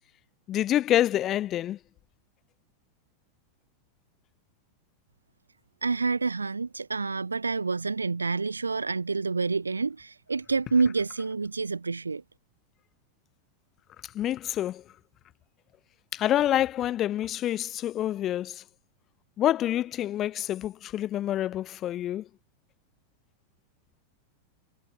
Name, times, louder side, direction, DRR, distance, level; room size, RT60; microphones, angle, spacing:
voice 1, 0.5-1.8 14.1-14.8 16.1-18.6 19.4-22.2, left 12 dB, 30° left, 0.9 m, -27 dB
voice 2, 5.8-12.2, right 4 dB, 80° right, 1.6 m, -28 dB
figure-of-eight pair, 90°, 0 cm